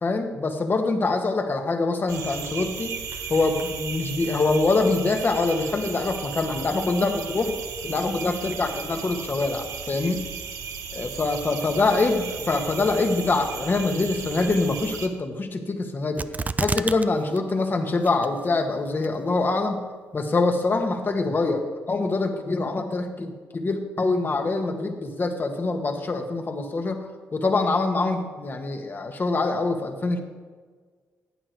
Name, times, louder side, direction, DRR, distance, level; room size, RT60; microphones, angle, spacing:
voice 1, 0.0-3.0 3.3-7.6 7.8-10.3 10.9-16.2 16.6-19.9 20.1-30.2, left 3 dB, 40° left, 5 dB, 1.8 m, -24 dB
sound 1, 2.1-15.1, right 6 dB, 75° right, 1.2 m, -36 dB
sound 2, 16.2-17.1 17.4-17.5 18.0-18.5 19.0-19.1, right 4 dB, 30° right, 0.5 m, -27 dB
14.5 x 9.0 x 4.7 m, 1.5 s
supercardioid pair, 60°, 5 cm